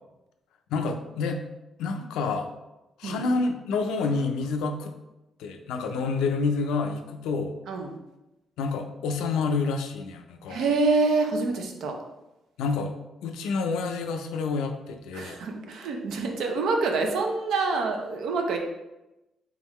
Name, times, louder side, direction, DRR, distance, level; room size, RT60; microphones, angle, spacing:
voice 1, 0.7-1.4 1.8-2.5 3.0-4.9 5.4-7.5 8.6-10.7 12.6-12.9 13.2-15.4, left 4 dB, 90° left, 6 dB, 0.4 m, -28 dB
voice 2, 10.5-12.0 15.1-18.6, right 3 dB, 80° right, 3 dB, 0.7 m, -26 dB
3.7 x 3.5 x 3.1 m, 0.96 s
cardioid pair, 90°, 0 cm